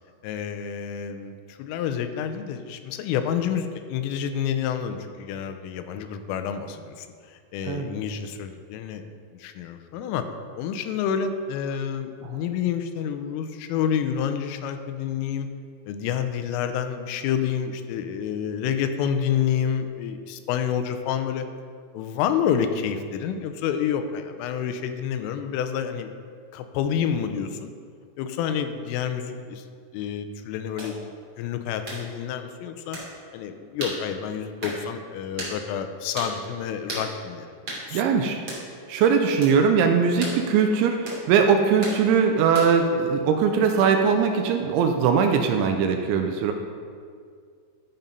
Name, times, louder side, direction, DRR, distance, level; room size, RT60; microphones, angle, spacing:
voice 1, 0.2-9.0 9.3-10.3 10.6-15.5 15.9-21.5 21.9-26.1 26.5-27.7 28.2-29.7 29.9-31.1 31.4-33.0 33.3-37.5 37.9-38.0, left 8 dB, 90° left, 8 dB, 3.3 m, -28 dB
voice 2, 7.6-8.0 12.2-12.3 37.9-38.4 38.9-46.5, right 6 dB, 85° right, 5 dB, 2.8 m, -21 dB
sound 1, 30.8-30.9 31.8-32.0 32.9-33.1 33.8-34.0 34.6-34.8 35.4-35.6 36.1-36.3 36.9-37.1 37.7-37.8 38.5-38.6 39.4-39.6 40.2-40.4 41.0-41.2 41.8-42.0 42.5-42.8, right 1 dB, 30° right, 2.0 m, -33 dB
13.5 x 5.6 x 5.3 m, 2.1 s
omnidirectional pair, 5.6 m